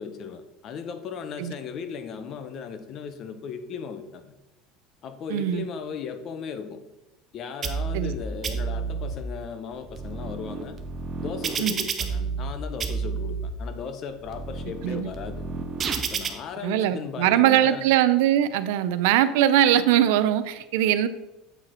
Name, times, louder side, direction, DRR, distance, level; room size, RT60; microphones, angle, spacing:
voice 1, 0.0-4.3 5.0-6.8 7.3-10.8 11.2-15.4 16.1-17.8, left 6 dB, 35° left, 10 dB, 0.6 m, -36 dB
voice 2, 5.3-5.6 7.9-8.1 11.6-11.7 14.8-15.1 16.6-21.1, right 11 dB, 85° right, 13 dB, 0.5 m, -21 dB
sound 1, 7.6-8.2 8.4-9.2 9.7-12.5 12.8-13.5 14.1-16.3, right 5 dB, 25° right, 0.6 m, -30 dB
7.8 x 4.9 x 4.3 m, 0.98 s
cardioid pair, 175°, 0 cm